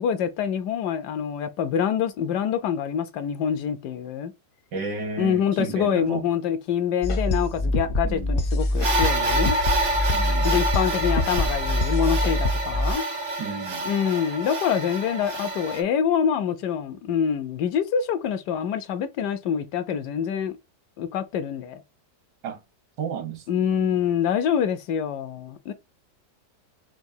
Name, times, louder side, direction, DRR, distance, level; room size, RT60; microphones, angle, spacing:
voice 1, 0.0-4.3 5.2-9.6 10.4-13.0 13.8-20.6 21.0-21.8 23.5-25.7, left 8 dB, 75° left, 1.2 m, -25 dB
voice 2, 4.7-6.2 8.0-8.4 10.1-10.5 13.4-13.9 22.4-22.6 23.0-23.9, right 5 dB, 75° right, 1.6 m, -33 dB
sound 1, 7.0-12.9, left 1 dB, 60° left, 0.6 m, -25 dB
sound 2, 8.8-15.8, right 1 dB, 55° right, 0.5 m, -27 dB
5.9 x 2.3 x 2.6 m
omnidirectional pair, 1.8 m